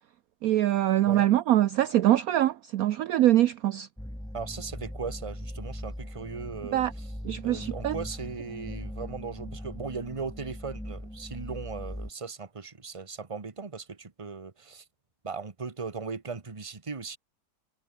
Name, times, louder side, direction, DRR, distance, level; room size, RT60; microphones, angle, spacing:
voice 1, 0.4-3.9 6.7-6.9 7.2-8.0, right 13 dB, 65° right, 1.0 m, -23 dB
sound 1, 4.0-12.1, equal, 5° left, 1.0 m, -40 dB
voice 2, 4.3-7.1 7.4-14.8 15.2-17.2, right 5 dB, 20° right, 1.3 m, -38 dB
omnidirectional pair, 1.8 m